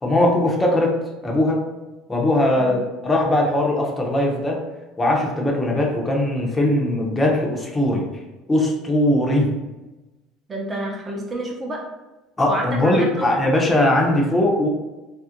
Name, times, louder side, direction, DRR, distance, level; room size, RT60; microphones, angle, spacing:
voice 1, 0.0-1.0 1.2-1.6 2.1-4.6 5.0-8.0 8.5-9.5 12.4-14.7, left 1 dB, 20° left, -1 dB, 0.7 m, -20 dB
voice 2, 10.5-11.8 12.5-13.3, right 1 dB, 25° right, -1 dB, 0.7 m, -29 dB
2.4 x 2.0 x 2.8 m, 1.1 s
hypercardioid pair, 85°, 0 cm